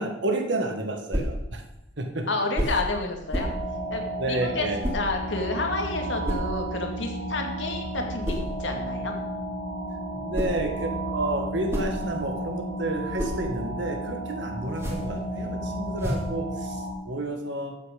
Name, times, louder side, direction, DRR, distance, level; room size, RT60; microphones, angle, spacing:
voice 1, 0.0-1.6 2.0-2.3 4.2-4.8 10.2-17.8, right 1 dB, 70° right, 4 dB, 1.8 m, -31 dB
sound 1, 1.1-1.4 2.5-2.9 3.3-3.6 4.8-5.1 6.2-6.5 8.2-8.5 10.1-10.7 11.4-12.4 12.9-13.4 14.7-15.2 16.0-16.4, equal, 15° right, 2.3 m, -30 dB
voice 2, 2.3-3.5 3.9-4.7 4.9-9.1, left 2 dB, 75° left, 3 dB, 2.2 m, -30 dB
sound 2, 3.3-16.9, right 1 dB, 90° right, 4.5 m, -33 dB
14.0 x 8.4 x 5.3 m, 0.92 s
head